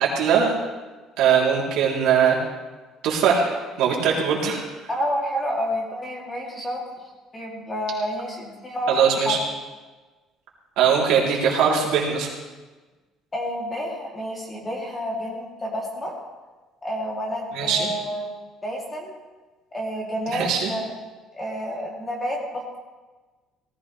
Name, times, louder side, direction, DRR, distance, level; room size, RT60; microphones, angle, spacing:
voice 1, 0.2-0.5 1.2-2.4 3.0-3.5 3.8-4.6 8.9-9.4 10.8-12.3 17.5-17.9 20.3-20.7, right 7 dB, 70° right, -3 dB, 3.3 m, -20 dB
voice 2, 4.9-6.8 7.3-9.4 13.3-16.2 16.8-18.3 18.6-19.2 19.7-20.9 21.3-22.8, equal, 15° left, -2 dB, 2.9 m, -29 dB
18.5 x 14.5 x 3.3 m, 1.3 s
cardioid pair, 175°, 0 cm